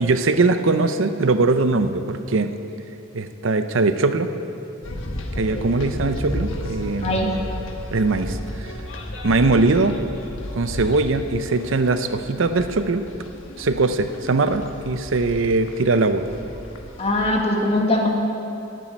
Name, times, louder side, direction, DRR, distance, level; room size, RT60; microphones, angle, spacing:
voice 1, 0.0-2.5 3.1-4.3 5.4-7.4 7.9-8.7 9.2-10.0 10.5-13.0 13.6-16.2, right 3 dB, 65° right, 9 dB, 0.6 m, -21 dB
sound 1, 4.8-17.3, left 1 dB, 70° left, 1.3 m, -33 dB
voice 2, 7.0-7.3 17.0-18.1, left 1 dB, 30° left, 0 dB, 1.7 m, -21 dB
10.5 x 9.2 x 9.7 m, 2.7 s
head